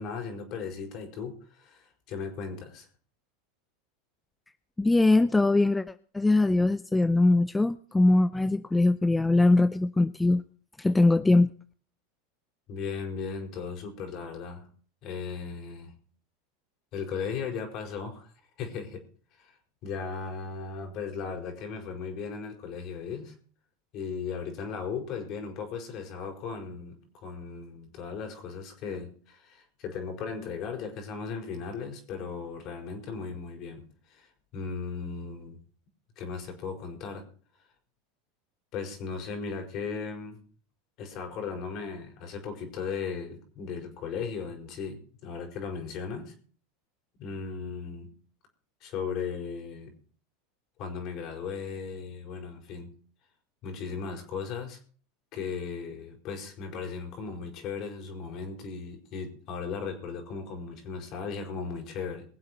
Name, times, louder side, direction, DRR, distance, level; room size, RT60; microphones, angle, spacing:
voice 1, 0.0-2.9 12.7-14.7 15.0-15.9 16.9-18.3 18.6-19.0 19.4-19.5 19.8-23.3 23.9-33.8 34.1-35.6 36.2-37.2 38.7-40.4 41.0-46.3 47.2-48.1 48.8-49.9 50.8-52.9 53.6-54.8 55.3-62.2, left 5 dB, 50° left, 3 dB, 4.7 m, -37 dB
voice 2, 4.8-5.8 6.1-10.4 10.8-11.5, left 2 dB, 10° left, 13 dB, 0.6 m, -22 dB
22.5 x 7.8 x 4.5 m, 0.43 s
hypercardioid pair, 105°, 0 cm